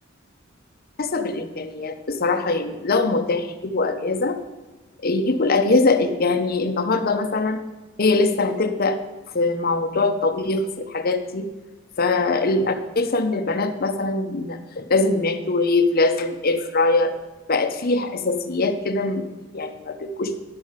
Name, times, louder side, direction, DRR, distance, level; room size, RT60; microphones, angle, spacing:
voice 1, 1.0-4.4 5.0-7.6 8.0-9.0 9.3-11.5 12.0-17.1 17.5-19.3 19.5-20.3, left 3 dB, 50° left, 8 dB, 0.8 m, -22 dB
10.5 x 5.1 x 7.3 m, 1.2 s
head